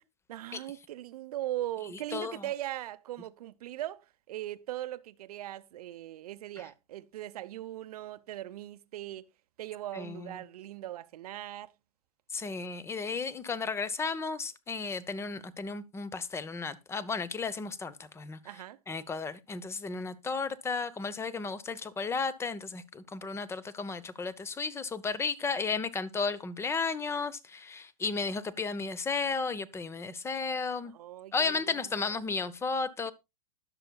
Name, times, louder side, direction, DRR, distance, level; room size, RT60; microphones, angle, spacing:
voice 1, 0.3-4.0 4.3-9.3 9.6-11.7 18.4-18.8 30.9-32.1, right 14 dB, 70° right, 0.9 m, -39 dB
voice 2, 1.9-2.5 9.9-10.4 12.3-18.4 18.9-30.9 31.3-33.1, left 4 dB, 15° left, 0.8 m, -34 dB
20.0 x 6.8 x 2.3 m
hypercardioid pair, 125°, 20 cm